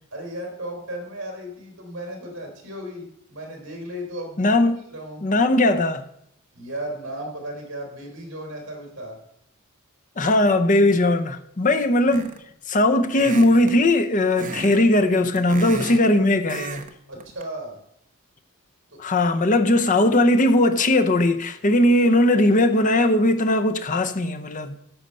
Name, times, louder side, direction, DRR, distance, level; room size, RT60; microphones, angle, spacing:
voice 1, 0.1-4.4 4.9-5.2 6.5-9.2 17.1-17.8 18.9-19.0, right 1 dB, 60° right, 3.4 m, -35 dB
voice 2, 4.4-4.8 5.2-6.1 10.2-12.3 12.7-16.8 19.0-24.8, left 1 dB, 40° left, 0.7 m, -19 dB
sound 1, 12.1-12.5 13.1-13.8 14.3-14.8 15.1-16.1 16.5-16.9 17.2-17.4, right 3 dB, 40° right, 0.9 m, -34 dB
10.0 x 6.6 x 5.5 m
head